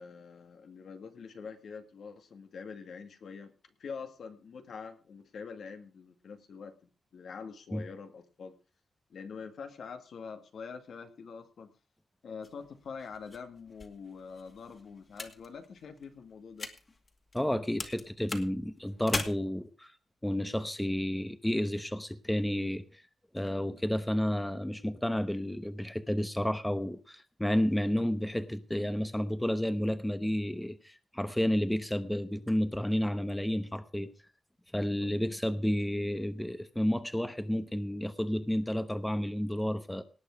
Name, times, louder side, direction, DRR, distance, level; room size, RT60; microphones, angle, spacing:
voice 1, 0.0-3.5 3.8-6.7 7.1-8.6 9.1-11.7 12.2-16.7, left 5 dB, 75° left, 2.3 m, -45 dB
sound 1, 12.4-17.5 17.8-19.2, left 3 dB, 35° left, 2.3 m, -41 dB
voice 2, 17.3-19.9 20.2-23.0 23.3-34.1 34.7-40.0, left 1 dB, 5° left, 1.0 m, -31 dB
18.5 x 8.7 x 4.9 m
wide cardioid pair, 105°, 0 cm